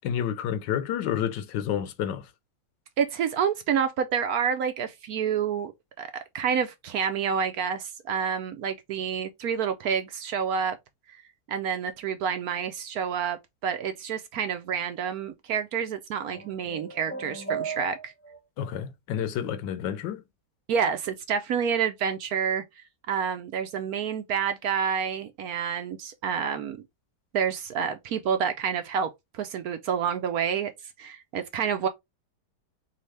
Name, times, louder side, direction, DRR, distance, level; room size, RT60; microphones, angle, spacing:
voice 1, 0.0-2.3 18.6-20.2, left 9 dB, 80° left, 1.3 m, -29 dB
voice 2, 3.0-5.7 6.0-10.8 11.1-11.2 11.5-18.1 20.7-26.8 27.3-30.7 31.0-31.9, right 7 dB, 65° right, 1.0 m, -28 dB
sound 1, 16.3-18.4, right 5 dB, 10° left, 0.6 m, -36 dB
4.0 x 3.6 x 3.2 m
omnidirectional pair, 1.9 m